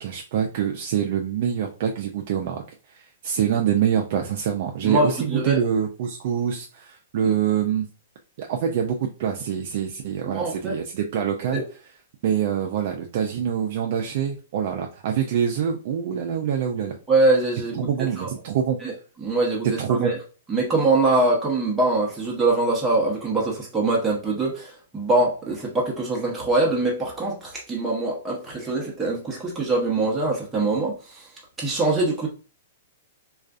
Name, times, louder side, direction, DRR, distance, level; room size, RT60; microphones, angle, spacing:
voice 1, 0.0-2.6 2.9-7.9 8.4-11.6 12.2-17.0 17.7-18.8 19.8-20.1, right 8 dB, 55° right, 2 dB, 0.3 m, -25 dB
voice 2, 4.8-5.6 7.2-7.3 10.3-10.7 11.5-11.6 17.1-18.3 18.8-18.9 19.2-20.2 20.5-30.9 31.6-32.3, right 2 dB, 10° right, -3 dB, 0.7 m, -23 dB
2.3 x 2.3 x 2.4 m, 0.37 s
hypercardioid pair, 135°, 0 cm